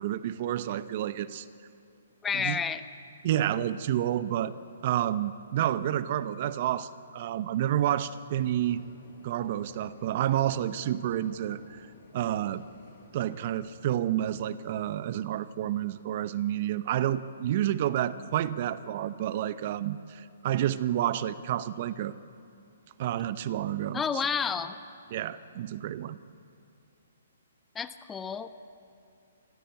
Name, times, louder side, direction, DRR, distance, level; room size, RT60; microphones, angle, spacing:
voice 1, 0.0-1.5 2.3-2.6 3.2-4.5 4.8-8.8 9.2-11.9 12.1-12.6 13.1-22.1 23.0-24.0 25.1-26.2, right 12 dB, 45° right, 15 dB, 0.8 m, -29 dB
voice 2, 2.2-2.8 23.9-24.8 27.7-28.5, left 6 dB, 15° left, 11 dB, 0.9 m, -30 dB
sound 1, 8.3-14.2, left 5 dB, 50° left, 5.0 m, -54 dB
25.0 x 15.5 x 8.5 m, 2.5 s
figure-of-eight pair, 130°, 0 cm